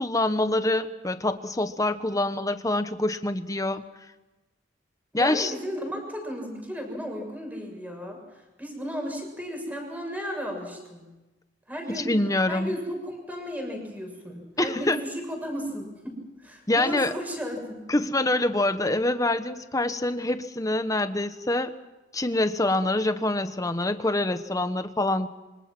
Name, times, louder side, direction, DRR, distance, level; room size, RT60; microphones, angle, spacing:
voice 1, 0.0-3.8 5.1-5.5 11.9-12.7 14.6-15.0 16.7-17.1 17.9-21.7 22.1-25.3, left 2 dB, 20° left, 10 dB, 1.2 m, -25 dB
voice 2, 5.1-8.2 8.6-11.1 11.7-12.1 12.5-17.8, equal, 10° right, 2 dB, 7.0 m, -34 dB
27.0 x 25.0 x 6.1 m, 1.1 s
head